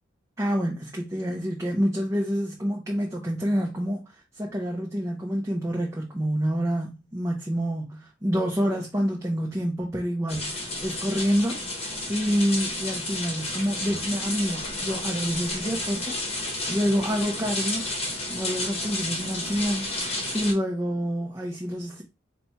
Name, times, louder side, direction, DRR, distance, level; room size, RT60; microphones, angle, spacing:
voice 1, 0.4-4.0 4.3-16.2 16.7-17.8 18.3-22.0, equal, 15° right, 0.6 m, -27 dB
sound 1, 10.3-20.5, left 2 dB, 30° left, 1.0 m, -31 dB
4.2 x 2.2 x 4.2 m
head